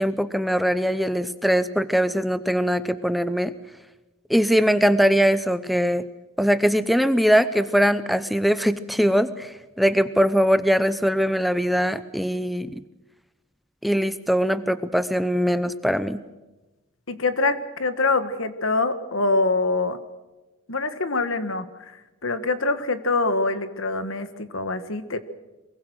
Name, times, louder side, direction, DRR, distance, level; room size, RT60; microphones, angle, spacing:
voice 1, 0.0-3.5 4.3-6.0 6.4-12.8 13.8-16.2, equal, ahead, 13 dB, 0.7 m, -21 dB
voice 2, 17.1-20.0 20.7-21.9 22.2-25.2, left 3 dB, 70° left, 11 dB, 1.6 m, -24 dB
23.5 x 22.5 x 6.3 m, 1.1 s
head